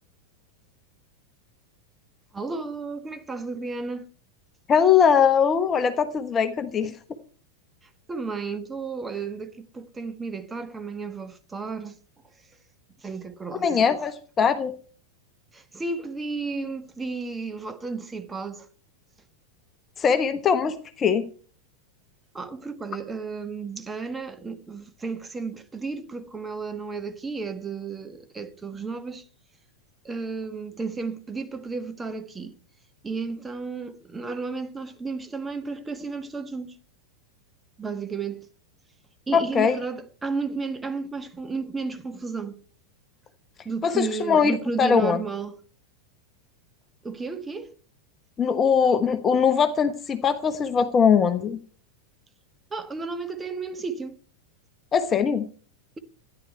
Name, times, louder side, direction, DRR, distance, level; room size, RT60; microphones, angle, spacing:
voice 1, 2.3-4.1 8.1-12.0 13.0-13.7 15.5-18.7 22.3-29.2 30.0-32.5 33.0-36.8 37.8-38.5 39.3-42.6 43.6-45.6 47.0-47.7 52.7-54.2, right 4 dB, 10° right, 1.4 m, -33 dB
voice 2, 4.7-7.0 13.6-14.7 20.0-21.3 39.3-39.8 43.8-45.2 48.4-51.6 54.9-55.5, left 6 dB, 25° left, 1.2 m, -21 dB
13.5 x 10.5 x 4.5 m
figure-of-eight pair, 90°, 0 cm